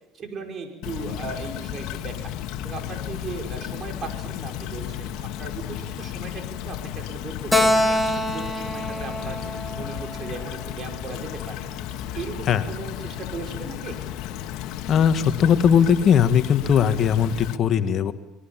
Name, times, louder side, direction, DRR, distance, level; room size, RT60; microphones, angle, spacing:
voice 1, 0.1-2.3 2.6-8.0 8.3-9.4 9.8-11.6 12.1-14.0, right 4 dB, 40° right, 4 dB, 5.7 m, -37 dB
Stream / Trickle dribble, 0.8-17.6, left 11 dB, 70° left, 1.6 m, -34 dB
Keyboard (musical), 7.5-11.0, left 1 dB, 5° left, 3.0 m, -25 dB
voice 2, 14.9-18.1, left 8 dB, 50° left, 9 dB, 1.7 m, -19 dB
25.0 x 21.0 x 7.4 m, 0.90 s
supercardioid pair, 100°, 0 cm